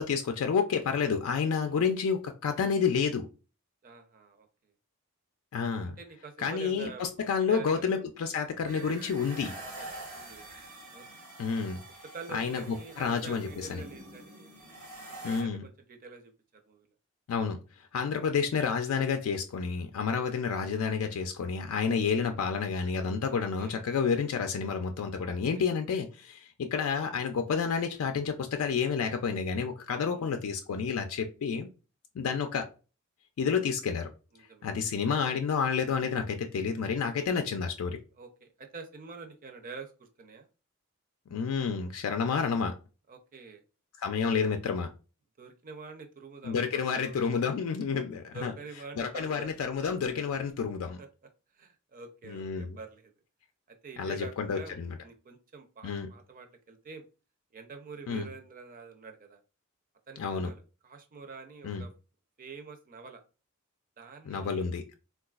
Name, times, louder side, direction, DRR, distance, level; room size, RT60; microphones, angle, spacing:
voice 1, 0.0-3.3 5.5-6.0 6.4-9.5 11.4-11.8 12.3-13.8 15.2-15.6 17.3-31.7 32.2-32.7 33.4-34.1 34.6-38.0 41.3-42.7 44.0-44.9 46.4-48.5 49.0-51.0 52.3-52.8 54.0-55.0 55.8-56.1 58.1-58.3 60.2-60.5 61.6-61.8 64.3-64.9, left 6 dB, 80° left, 6 dB, 0.4 m, -30 dB
voice 2, 3.8-4.5 5.8-7.9 8.3-8.4 9.8-10.5 10.9-11.1 12.1-14.5 15.1-16.9 23.2-23.8 25.5-25.6 30.0-30.3 34.3-34.7 38.2-40.5 43.1-43.6 45.4-47.2 48.3-49.5 51.0-51.1 51.5-53.1 53.7-57.0 57.5-59.4 60.1-61.9 62.4-63.2 64.0-64.7, right 4 dB, 40° right, 5 dB, 0.5 m, -47 dB
sound 1, 8.7-15.4, right 2 dB, 85° right, 1.3 m, -45 dB
3.8 x 2.3 x 2.3 m, 0.34 s
head